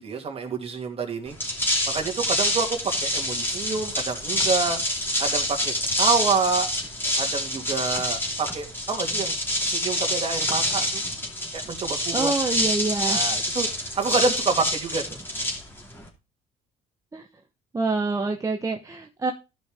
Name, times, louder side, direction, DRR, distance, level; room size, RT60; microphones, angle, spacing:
voice 1, 0.0-1.4 1.9-4.8 5.2-6.7 7.2-9.3 9.6-11.0 11.5-12.3 13.1-13.7 13.9-15.2, right 4 dB, 35° right, 2.5 m, -27 dB
sound 1, 1.3-16.1, left 1 dB, 10° left, 2.7 m, -27 dB
voice 2, 12.1-13.2 17.1-17.3 17.7-19.3, right 3 dB, 20° right, 1.0 m, -26 dB
13.0 x 5.3 x 3.6 m
cardioid pair, 110°, 17 cm